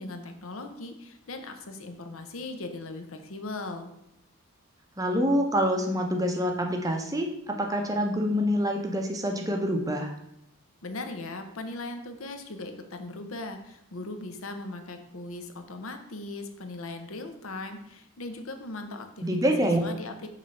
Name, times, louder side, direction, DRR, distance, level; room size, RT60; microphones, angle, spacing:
voice 1, 0.0-3.9 10.8-20.3, left 2 dB, 70° left, 6 dB, 0.8 m, -39 dB
voice 2, 5.0-10.1 19.2-19.8, equal, 15° right, 3 dB, 0.6 m, -26 dB
6.3 x 3.3 x 5.4 m, 0.79 s
head